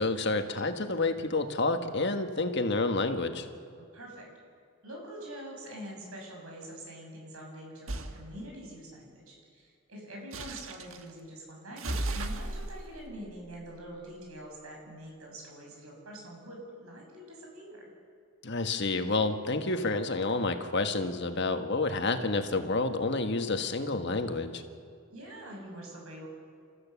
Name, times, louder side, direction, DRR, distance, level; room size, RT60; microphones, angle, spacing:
voice 1, 0.0-3.4 18.4-24.6, left 3 dB, 55° left, 7 dB, 1.5 m, -29 dB
voice 2, 3.8-4.3 4.8-17.8 25.1-26.3, equal, 90° right, 0 dB, 6.8 m, -45 dB
sound 1, 7.9-8.2 10.3-11.0 11.8-14.4, right 2 dB, 75° right, 1.5 m, -37 dB
29.5 x 14.5 x 7.1 m, 2.3 s
head